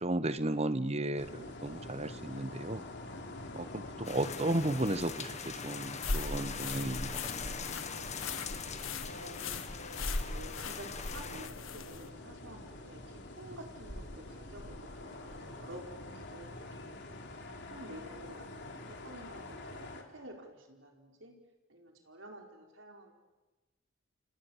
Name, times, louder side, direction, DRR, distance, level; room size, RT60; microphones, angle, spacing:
voice 1, 0.0-2.8 3.5-7.5, right 1 dB, 30° right, 13 dB, 1.2 m, -34 dB
sound 1, 1.2-20.0, left 2 dB, 60° left, 3.5 m, -47 dB
sound 2, 4.0-11.5, left 6 dB, 35° left, 1.8 m, -43 dB
sound 3, 6.0-12.1, left 3 dB, 85° left, 1.7 m, -39 dB
voice 2, 9.0-9.6 10.2-14.7 15.0-16.5 16.9-17.0 17.7-21.3 21.7-23.1, right 1 dB, 70° right, 2 dB, 4.7 m, -50 dB
29.0 x 28.0 x 7.3 m, 1.1 s
head